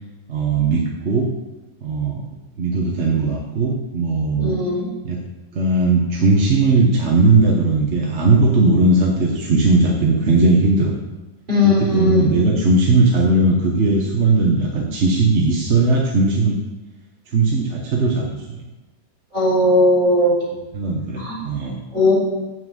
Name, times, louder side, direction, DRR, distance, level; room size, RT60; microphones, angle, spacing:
voice 1, 0.3-1.3 1.8-4.5 5.0-5.2 5.5-10.9 11.6-16.6 17.3-18.6 20.7-21.8, right 3 dB, 45° right, -1 dB, 1.2 m, -18 dB
voice 2, 4.4-4.9 11.5-12.2 19.3-20.3 21.2-21.4 21.9-22.1, left 2 dB, 25° right, -7 dB, 3.6 m, -17 dB
7.2 x 6.3 x 7.8 m, 1.1 s
omnidirectional pair, 1.8 m